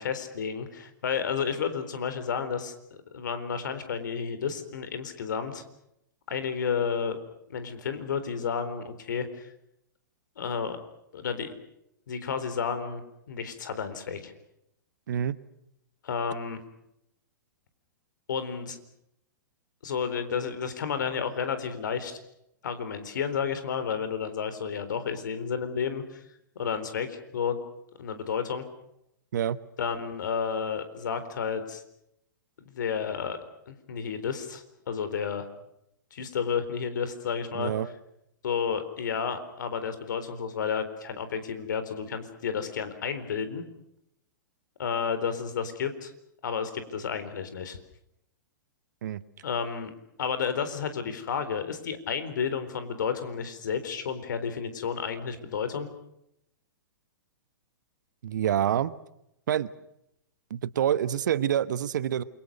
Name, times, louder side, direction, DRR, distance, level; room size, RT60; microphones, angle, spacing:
voice 1, 0.0-5.6 6.3-7.2 7.5-9.5 10.4-10.8 11.1-11.5 12.1-13.0 13.3-14.3 16.0-16.6 18.3-18.8 19.8-22.2 22.6-26.2 26.6-27.6 28.0-28.6 29.8-31.8 32.6-33.4 33.7-35.5 36.1-37.7 38.4-43.6 44.8-46.1 46.4-47.8 49.4-49.9 50.2-55.9, left 6 dB, 65° left, 10 dB, 4.1 m, -31 dB
voice 2, 37.5-37.9 49.0-49.2 58.2-58.9 59.5-59.7 60.5-62.2, right 10 dB, 65° right, 16 dB, 1.3 m, -27 dB
28.5 x 23.5 x 6.5 m, 0.80 s
figure-of-eight pair, 110°, 11 cm